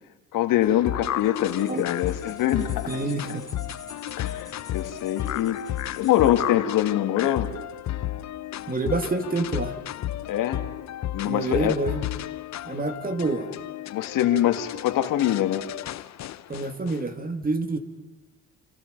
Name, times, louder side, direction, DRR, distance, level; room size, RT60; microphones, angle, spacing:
voice 1, 0.3-3.0 4.2-7.5 10.3-10.6 11.1-11.8 13.9-15.6, left 12 dB, 75° left, 7 dB, 2.0 m, -24 dB
sound 1, 0.6-17.0, left 13 dB, 55° left, 0.8 m, -33 dB
sound 2, 1.2-6.5, left 3 dB, 10° left, 4.9 m, -48 dB
voice 2, 2.9-3.5 8.7-9.8 11.3-12.0 12.6-13.5 16.5-17.8, right 3 dB, 25° right, 7 dB, 2.5 m, -27 dB
28.5 x 27.0 x 5.3 m, 1.1 s
cardioid pair, 95°, 33 cm